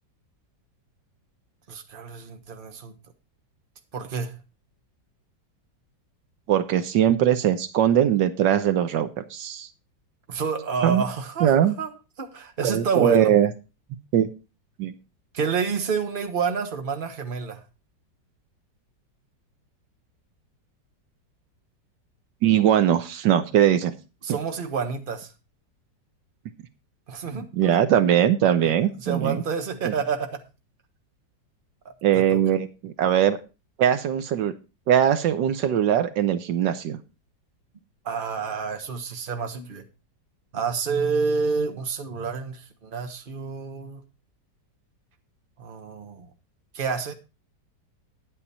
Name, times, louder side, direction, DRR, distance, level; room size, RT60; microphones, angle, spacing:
voice 1, 1.7-2.9 3.9-4.3 10.3-11.9 12.2-13.3 15.3-17.6 24.2-25.3 27.1-27.7 29.0-30.4 31.8-32.4 38.0-39.8 40.5-44.0 45.6-46.3 46.7-47.1, right 5 dB, 30° right, 1.3 m, -29 dB
voice 2, 6.5-9.7 10.8-11.0 11.4-11.7 12.6-13.5 14.1-14.3 14.8-14.9 22.4-23.9 24.3-24.4 27.3-29.4 29.8-29.9 32.0-33.4 33.8-34.5 34.9-37.0, right 10 dB, 75° right, 1.5 m, -21 dB
10.0 x 9.0 x 4.2 m
omnidirectional pair, 2.0 m